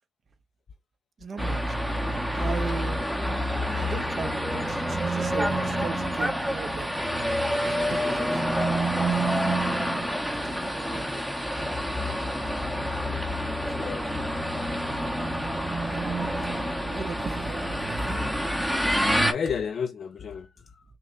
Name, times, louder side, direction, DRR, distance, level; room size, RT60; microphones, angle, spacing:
voice 1, 1.2-1.8 2.3-3.0 3.7-6.9 7.6-8.4 10.3-11.2 15.9-18.3, right 5 dB, 45° right, 0.7 m, -37 dB
sound 1, 1.4-19.3, equal, 5° right, 0.7 m, -27 dB
voice 2, 12.0-12.5 13.8-14.3 15.4-15.5 19.0-20.8, left 6 dB, 50° left, 0.3 m, -33 dB
5.7 x 2.2 x 2.4 m
cardioid pair, 90°, 0 cm